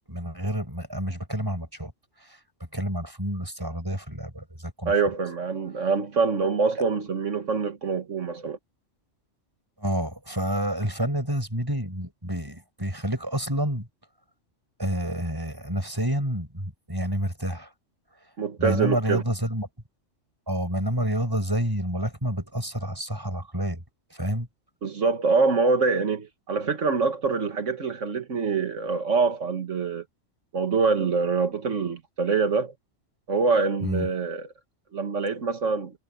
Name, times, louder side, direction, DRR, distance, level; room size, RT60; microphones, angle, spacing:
voice 1, 0.1-1.9 2.3-2.4 2.7-4.9 9.8-13.9 14.8-17.7 18.6-19.7 20.5-23.8 24.1-24.5 33.8-34.1, equal, 15° right, 6.0 m, -29 dB
voice 2, 4.9-8.6 18.4-19.2 24.8-30.0 30.5-32.7 33.3-34.5 34.9-35.9, right 4 dB, 75° right, 1.9 m, -25 dB
omnidirectional pair, 1.3 m